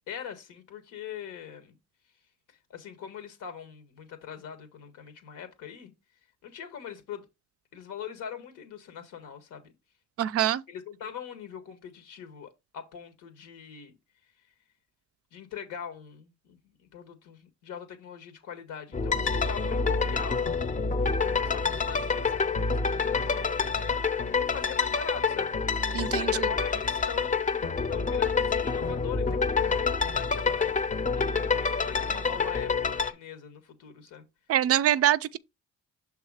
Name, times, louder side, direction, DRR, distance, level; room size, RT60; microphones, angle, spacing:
voice 1, 0.1-1.8 2.5-5.9 6.4-7.2 7.7-9.7 10.7-13.9 15.3-34.2, left 8 dB, 90° left, 1.6 m, -43 dB
voice 2, 10.2-10.6 25.9-26.5 34.5-35.4, right 11 dB, 50° right, 0.4 m, -24 dB
sound 1, 18.9-33.1, left 5 dB, 25° left, 0.7 m, -27 dB
6.4 x 3.5 x 4.8 m
cardioid pair, 90°, 30 cm